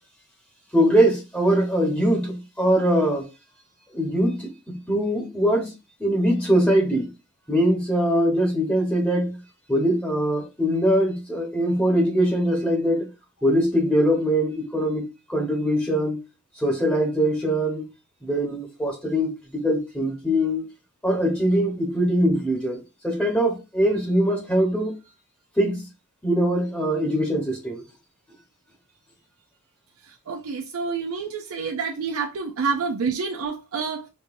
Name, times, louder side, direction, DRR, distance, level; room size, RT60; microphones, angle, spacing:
voice 1, 0.7-3.3 3.9-5.7 6.0-7.1 7.5-9.4 9.7-13.1 13.4-16.2 16.5-17.8 18.2-20.6 21.0-24.9 25.6-25.9 26.2-27.8, equal, 5° left, 1.1 m, -22 dB
voice 2, 30.0-34.1, right 5 dB, 75° right, 0.5 m, -28 dB
5.3 x 2.7 x 2.6 m
head